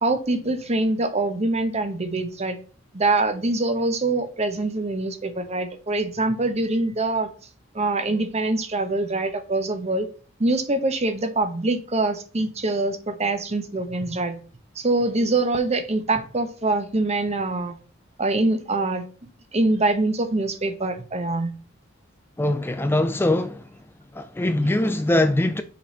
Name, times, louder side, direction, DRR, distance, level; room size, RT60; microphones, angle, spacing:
voice 1, 0.0-2.6 2.9-7.3 7.7-10.1 10.4-14.4 14.8-17.8 18.2-19.0 19.5-21.5, right 2 dB, 35° right, 0.9 m, -24 dB
voice 2, 22.4-23.7 24.1-25.6, left 1 dB, 10° left, 0.4 m, -22 dB
5.9 x 5.0 x 4.0 m
head